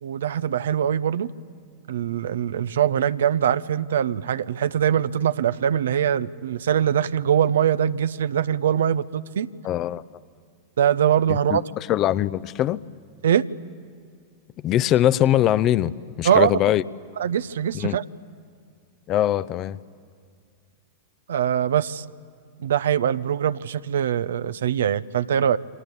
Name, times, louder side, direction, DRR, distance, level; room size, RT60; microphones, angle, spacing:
voice 1, 0.0-1.3 1.9-9.5 10.8-11.6 13.2-13.4 16.2-16.5 17.2-18.0 21.3-22.0 22.6-25.6, right 9 dB, 65° right, 14 dB, 0.8 m, -22 dB
voice 2, 9.6-10.0 11.3-12.8 14.6-15.9 16.2-16.8 17.7-18.0 19.1-19.8, left 12 dB, 35° left, 16 dB, 0.7 m, -22 dB
28.0 x 25.0 x 8.4 m, 2.1 s
figure-of-eight pair, 90°, 0 cm